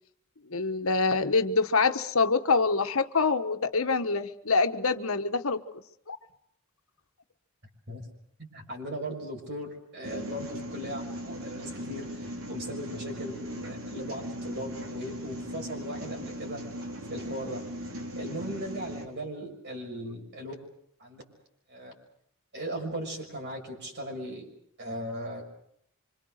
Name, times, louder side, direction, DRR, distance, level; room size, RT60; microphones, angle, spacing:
voice 1, 0.5-5.6 6.1-6.2, left 4 dB, 85° left, 8 dB, 1.3 m, -25 dB
voice 2, 8.4-16.6 17.1-17.6 18.1-20.6 21.0-21.2 21.7-21.9 22.5-25.4, equal, 55° right, 2 dB, 6.4 m, -38 dB
sound 1, 10.0-19.1, equal, 80° right, 3.7 m, -39 dB
27.0 x 25.5 x 6.6 m, 0.69 s
head